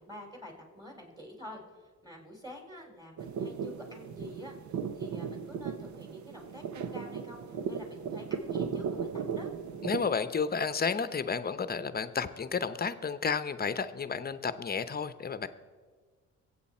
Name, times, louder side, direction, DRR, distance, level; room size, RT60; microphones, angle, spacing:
voice 1, 0.0-4.5 4.9-9.5, equal, 15° right, 2 dB, 4.1 m, -47 dB
sound 1, 3.2-10.1, right 6 dB, 70° right, 1.0 m, -36 dB
voice 2, 9.8-15.5, left 5 dB, 30° left, 12 dB, 0.8 m, -32 dB
23.0 x 8.6 x 4.4 m, 1.5 s
cardioid pair, 90°, 30 cm